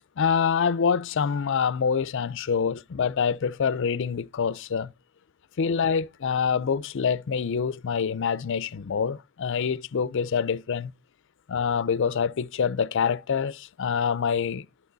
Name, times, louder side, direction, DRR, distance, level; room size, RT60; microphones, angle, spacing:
voice 1, 0.2-4.9 5.6-10.9 11.5-14.7, left 6 dB, 60° left, 0.5 m, -26 dB
12.0 x 6.1 x 3.9 m
head